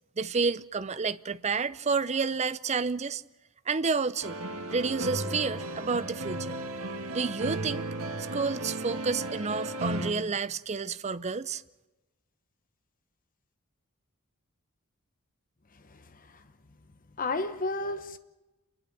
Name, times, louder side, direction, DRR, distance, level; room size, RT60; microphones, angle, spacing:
voice 1, 0.2-3.2 3.7-4.4 4.7-6.6 7.1-7.8 8.3-11.6, right 4 dB, 30° right, 0.6 m, -30 dB
sound 1, 4.2-10.1, right 1 dB, 70° right, 2.0 m, -35 dB
voice 2, 17.2-18.2, left 2 dB, 40° left, 1.0 m, -32 dB
29.0 x 12.0 x 8.5 m
head